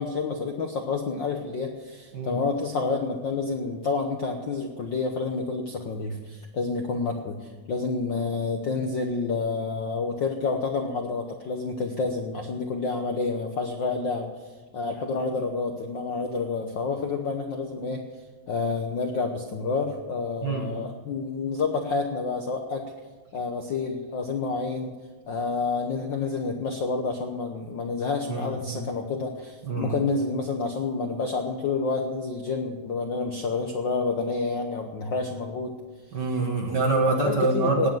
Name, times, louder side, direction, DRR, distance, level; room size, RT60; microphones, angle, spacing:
voice 1, 0.0-14.3 14.7-18.0 18.5-22.8 23.3-24.9 25.3-35.8 37.2-37.9, left 4 dB, 60° left, 4 dB, 1.2 m, -29 dB
voice 2, 20.4-20.9 28.3-28.8 29.7-30.0 36.1-37.9, right 3 dB, 45° right, 2 dB, 1.6 m, -26 dB
18.5 x 7.4 x 7.4 m, 1.3 s
omnidirectional pair, 3.3 m